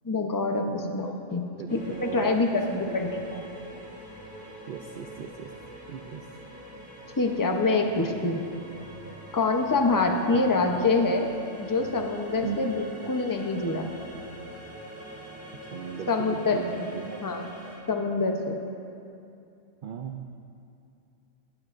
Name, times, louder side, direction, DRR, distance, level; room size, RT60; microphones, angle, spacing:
voice 1, 0.0-3.4 7.2-8.4 9.3-11.3 11.6-13.9 16.1-16.9 17.2-17.5 17.9-18.6, left 3 dB, 20° left, 3 dB, 0.6 m, -26 dB
voice 2, 0.7-1.1 1.5-2.4 2.7-3.0 4.7-5.5 5.9-6.2 10.3-10.9 12.4-12.7 15.7-17.2 19.8-20.3, right 7 dB, 60° right, 4 dB, 0.5 m, -37 dB
sound 1, 1.7-17.8, equal, 5° right, 3.1 m, -44 dB
19.5 x 9.4 x 2.6 m, 2.6 s
omnidirectional pair, 1.3 m